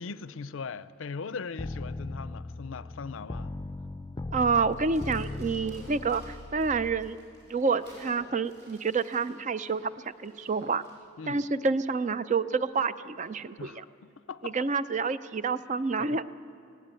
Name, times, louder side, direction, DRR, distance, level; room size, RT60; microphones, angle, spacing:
voice 1, 0.0-3.6 11.2-11.4 13.6-14.6 16.0-16.2, left 5 dB, 75° left, 16 dB, 0.5 m, -40 dB
sound 1, 1.6-7.1, left 2 dB, 20° left, 0.4 m, -38 dB
voice 2, 4.3-7.2 7.5-9.9 10.2-10.8 11.3-13.8 14.4-16.2, right 4 dB, 35° right, 14 dB, 0.5 m, -28 dB
Crumpling crinkling, 4.7-11.1, right 1 dB, 55° right, 6.2 m, -58 dB
sound 2, 5.5-6.1 7.5-8.3 9.1-9.9 10.4-10.8 11.2-11.6 13.1-13.3, right 1 dB, 90° right, 5.7 m, -53 dB
19.5 x 15.5 x 9.0 m, 2.7 s
head